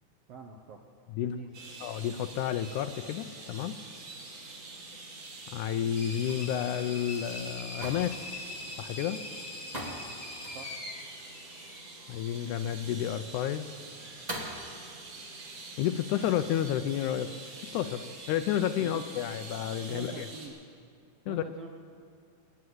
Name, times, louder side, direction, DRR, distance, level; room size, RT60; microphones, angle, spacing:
voice 1, 0.3-0.8 1.2-1.5 10.5-10.7 18.8-19.1 19.9-20.6 21.3-21.7, right 5 dB, 70° right, 3 dB, 1.5 m, -45 dB
sound 1, 1.5-20.5, right 3 dB, 55° right, 3.2 m, -46 dB
voice 2, 1.8-3.8 5.5-8.3 8.8-9.2 12.1-13.6 15.8-17.3 17.7-20.3 21.3-21.4, left 10 dB, 80° left, 11 dB, 1.9 m, -31 dB
sound 2, 5.9-12.3, left 2 dB, 35° left, 1.3 m, -43 dB
sound 3, 6.1-14.6, right 1 dB, 35° right, 0.6 m, -45 dB
19.0 x 9.7 x 7.8 m, 2.4 s
omnidirectional pair, 3.7 m